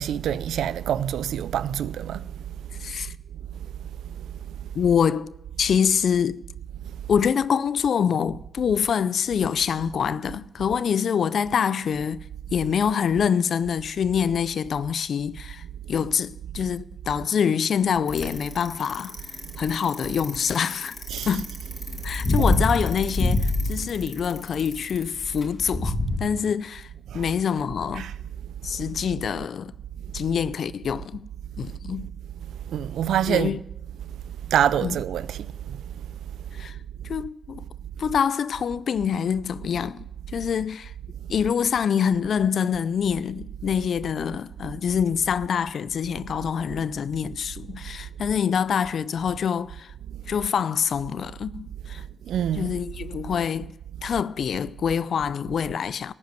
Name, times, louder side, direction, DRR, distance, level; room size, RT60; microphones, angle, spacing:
voice 1, 0.0-2.3 21.1-21.3 23.7-23.8 27.1-27.2 28.0-28.1 32.7-33.5 34.5-35.8 52.3-52.7, right 10 dB, 85° right, 0.4 m, -26 dB
voice 2, 2.8-3.1 4.7-5.3 5.6-6.4 7.1-12.2 12.5-19.1 19.6-21.0 21.2-21.5 22.0-26.9 27.1-28.1 28.6-29.7 30.1-31.2 31.6-32.1 33.3-33.6 34.8-35.0 36.5-36.8 37.0-37.6 38.0-40.9 41.3-49.9 50.3-52.0 52.5-53.7 54.0-56.1, left 7 dB, 70° left, 0.4 m, -25 dB
Bicycle, 18.1-26.2, left 2 dB, 50° left, 2.2 m, -26 dB
14.0 x 5.3 x 9.0 m
cardioid pair, 60°, 0 cm